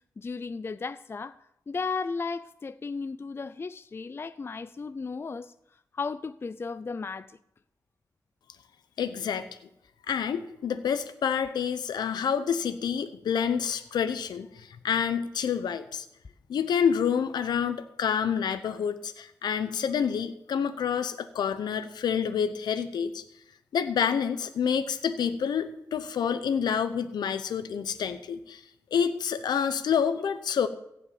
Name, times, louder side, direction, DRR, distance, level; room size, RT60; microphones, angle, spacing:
voice 1, 0.2-1.4 1.7-5.5 5.9-7.4, left 4 dB, 35° left, 0.4 m, -35 dB
voice 2, 9.0-9.5 10.1-16.0 16.5-23.2 23.7-28.6 28.9-30.7, left 7 dB, 85° left, 0.7 m, -28 dB
15.5 x 5.4 x 8.5 m
cardioid pair, 75°, 7 cm